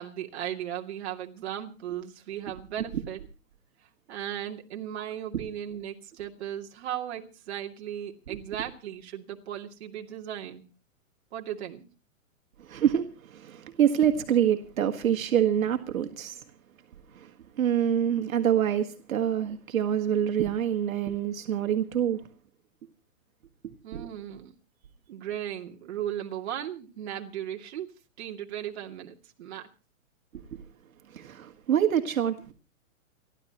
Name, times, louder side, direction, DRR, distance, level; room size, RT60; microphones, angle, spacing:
voice 1, 0.0-3.2 4.1-10.6 11.3-11.8 23.8-24.5 25.1-27.9 28.2-29.7, right 11 dB, 50° right, 1 dB, 2.5 m, -36 dB
voice 2, 12.6-16.4 17.1-22.2 23.9-24.1 30.5-30.6 31.1-32.5, right 9 dB, 80° right, 5 dB, 1.9 m, -26 dB
29.5 x 11.5 x 3.0 m, 0.32 s
hypercardioid pair, 165°, 41 cm